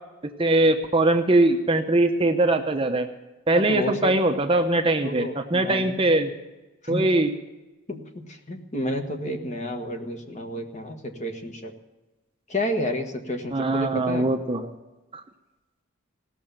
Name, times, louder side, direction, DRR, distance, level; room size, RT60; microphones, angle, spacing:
voice 1, 0.2-3.1 3.5-6.3 6.9-7.3 13.5-14.7, right 2 dB, 25° right, 5 dB, 0.8 m, -21 dB
voice 2, 3.5-4.3 5.0-6.1 6.8-7.1 7.9-11.7 12.5-14.3, left 1 dB, 35° left, 4 dB, 1.4 m, -31 dB
17.0 x 6.9 x 8.9 m, 1.1 s
head